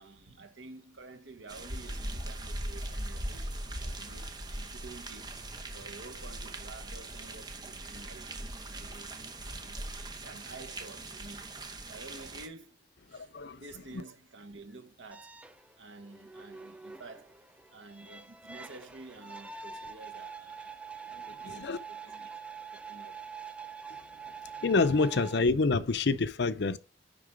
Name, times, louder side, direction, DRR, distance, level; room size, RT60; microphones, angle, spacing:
voice 1, 0.0-3.5 3.8-5.4 5.7-8.3 8.7-11.6 11.9-12.8 13.1-13.3 13.6-15.3 15.8-17.4 17.7-20.8 21.1-22.3 22.7-23.5, right 3 dB, 85° right, 1.3 m, -50 dB
sound 1, 1.5-12.5, right 1 dB, 20° right, 0.9 m, -40 dB
voice 2, 13.1-13.6 21.4-21.8 24.6-26.8, left 3 dB, 60° left, 0.6 m, -27 dB
sound 2, 15.1-25.4, right 5 dB, 5° right, 0.4 m, -45 dB
10.0 x 3.8 x 5.1 m
head